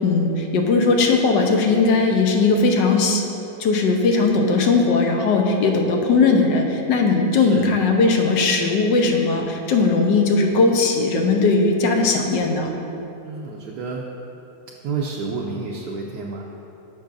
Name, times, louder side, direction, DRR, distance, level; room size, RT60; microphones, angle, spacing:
voice 1, 0.0-3.2 3.6-12.7, left 3 dB, 85° left, 2 dB, 1.4 m, -18 dB
voice 2, 7.4-7.7 13.2-14.1 14.8-16.4, right 4 dB, 75° right, -2 dB, 1.2 m, -29 dB
13.0 x 5.5 x 2.6 m, 2.9 s
omnidirectional pair, 1.9 m